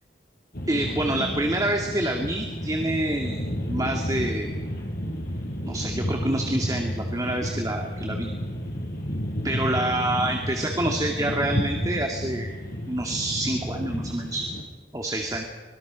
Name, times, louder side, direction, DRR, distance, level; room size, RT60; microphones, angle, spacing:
sound 1, 0.5-14.6, equal, 55° left, 5.4 m, -31 dB
voice 1, 0.7-3.4 3.7-4.5 5.6-8.3 9.4-12.5 12.9-14.5 14.9-15.4, right 1 dB, 20° right, 2 dB, 2.2 m, -27 dB
25.5 x 21.5 x 6.3 m, 1.3 s
head